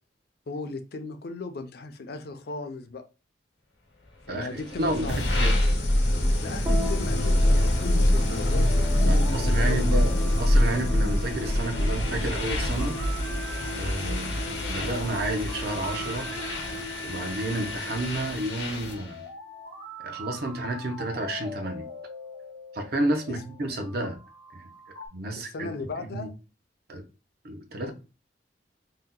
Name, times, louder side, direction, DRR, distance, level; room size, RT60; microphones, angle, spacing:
voice 1, 0.5-3.0 4.3-5.2 6.4-9.9 10.1-10.3 23.3-23.4 25.4-26.3, left 3 dB, 60° left, 0.4 m, -37 dB
voice 2, 4.3-5.6 9.1-13.0 13.8-16.3 17.0-19.2 20.0-21.9 22.7-24.2 24.5-24.7 25.1-25.7 26.0-26.3 26.9-27.0 27.4-27.9, right 1 dB, 60° right, 0.6 m, -31 dB
sound 1, 4.5-19.1, left 1 dB, 80° left, 0.9 m, -25 dB
sound 2, 6.7-19.2, left 1 dB, 15° right, 0.5 m, -40 dB
sound 3, 7.9-25.1, left 1 dB, 45° right, 1.0 m, -43 dB
2.7 x 2.1 x 3.6 m
head